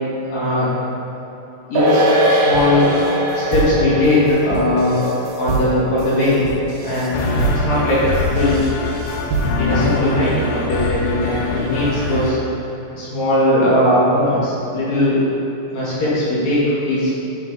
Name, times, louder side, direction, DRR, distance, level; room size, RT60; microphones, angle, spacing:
voice 1, 0.3-0.7 1.7-2.9 3.3-5.1 5.4-6.4 6.8-8.0 8.3-8.6 9.6-12.4 12.9-15.2 15.7-17.2, left 1 dB, 55° left, -10 dB, 2.9 m, -19 dB
sound 1, 1.7-8.4 8.7-8.8, equal, 90° right, 3.0 m, -22 dB
sound 2, 2.5-9.8, right 4 dB, 75° right, 2.5 m, -27 dB
sound 3, 7.1-12.3, left 3 dB, 80° left, 2.6 m, -23 dB
11.0 x 4.1 x 3.9 m, 3.0 s
omnidirectional pair, 4.2 m